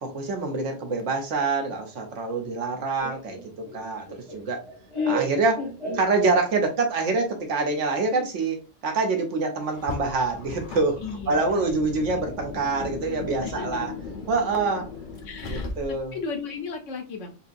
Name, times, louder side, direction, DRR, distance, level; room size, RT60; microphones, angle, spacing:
voice 1, 0.0-4.1 4.3-4.6 5.1-5.6 5.9-11.0 11.3-13.9 14.3-14.9 15.5-16.1, right 3 dB, 75° right, 4 dB, 1.2 m, -26 dB
Laughter, 3.0-6.7, left 1 dB, 25° left, 1.2 m, -32 dB
Car, 9.7-16.2, left 3 dB, 45° left, 1.0 m, -37 dB
voice 2, 11.0-11.8 13.4-13.8 15.2-17.4, left 4 dB, 80° left, 5 dB, 1.1 m, -36 dB
3.8 x 2.8 x 2.5 m, 0.32 s
omnidirectional pair, 1.3 m